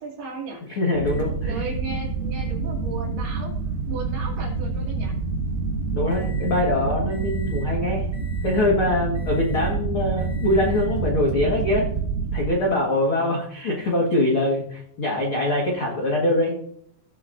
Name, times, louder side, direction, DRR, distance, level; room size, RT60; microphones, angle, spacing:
voice 1, 0.0-0.6 1.5-3.5 3.9-5.1, right 3 dB, 60° right, -2 dB, 4.1 m, -35 dB
voice 2, 0.7-1.6 5.9-8.1 8.4-11.9 12.3-16.6, left 1 dB, 85° left, -2 dB, 1.1 m, -23 dB
sound 1, 0.9-12.5, right 4 dB, 85° right, 3.8 m, -27 dB
Microwave oven, 1.1-6.7 7.1-7.7 8.1-8.7 9.1-9.8 10.2-11.0 12.0-12.1 14.1-14.2, left 1 dB, 20° right, 3.2 m, -48 dB
17.0 x 8.3 x 2.6 m, 0.66 s
omnidirectional pair, 5.4 m